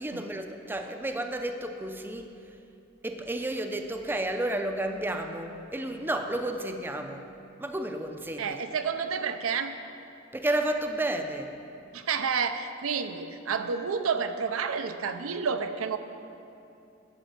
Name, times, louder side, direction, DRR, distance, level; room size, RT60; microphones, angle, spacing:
voice 1, 0.0-2.3 3.0-7.3 7.6-8.6 10.3-11.5, right 1 dB, 10° right, 5 dB, 0.4 m, -31 dB
voice 2, 8.4-9.7 11.9-16.0, right 6 dB, 85° right, 8 dB, 0.5 m, -30 dB
11.0 x 4.3 x 7.9 m, 2.7 s
head